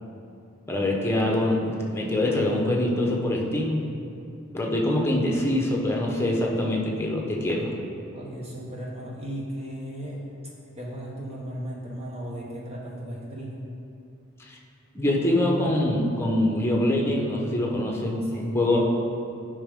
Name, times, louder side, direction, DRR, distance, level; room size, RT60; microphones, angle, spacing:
voice 1, 0.7-3.9 4.5-7.7 14.5-14.6 14.9-18.8, left 1 dB, 10° left, -2 dB, 1.0 m, -24 dB
voice 2, 8.1-13.7 18.2-18.8, equal, 30° right, -3 dB, 1.0 m, -36 dB
11.0 x 5.1 x 3.7 m, 2.6 s
head